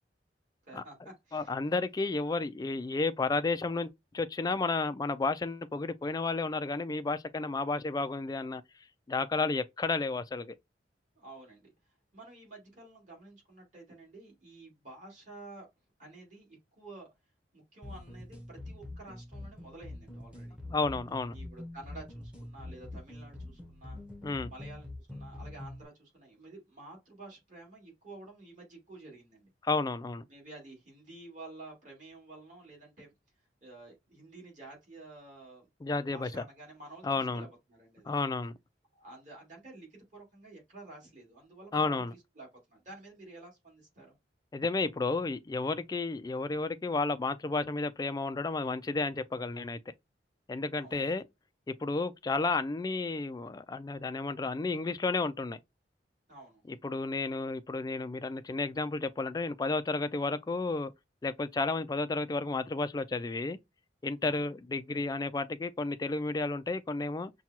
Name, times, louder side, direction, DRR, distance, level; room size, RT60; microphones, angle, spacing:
voice 1, 0.7-1.5 11.2-11.7 12.1-15.7 16.0-17.1 17.5-20.6 21.3-24.0 24.5-29.5 30.3-33.1 33.6-35.7 36.1-38.1 38.9-44.1 50.8-51.1 56.3-56.6 64.2-64.4, right 2 dB, 45° right, 2.5 m, -51 dB
voice 2, 1.3-8.6 9.1-10.5 20.7-21.3 24.2-24.5 29.6-30.2 35.8-36.4 37.0-37.5 38.1-38.5 41.7-42.1 44.5-49.8 50.5-51.2 51.7-55.6 56.7-60.9 61.2-63.6 64.0-67.3, left 3 dB, 20° left, 0.3 m, -32 dB
sound 1, 17.8-25.8, left 1 dB, 5° right, 0.9 m, -45 dB
5.8 x 2.3 x 2.8 m
head